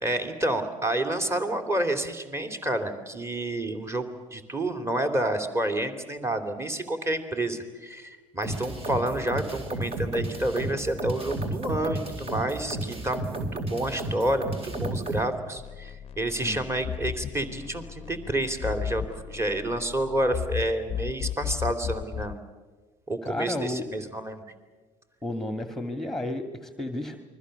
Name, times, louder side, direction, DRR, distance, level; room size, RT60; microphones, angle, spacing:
voice 1, 0.0-22.3 23.1-24.4, right 1 dB, 15° right, 8 dB, 3.2 m, -29 dB
sound 1, 8.4-15.3, right 1 dB, 35° right, 4.3 m, -32 dB
sound 2, 15.6-22.4, left 10 dB, 35° left, 0.8 m, -35 dB
voice 2, 23.2-23.8 25.2-27.2, left 1 dB, ahead, 7 dB, 2.0 m, -32 dB
29.0 x 22.5 x 6.8 m, 1.3 s
hypercardioid pair, 75°, 16 cm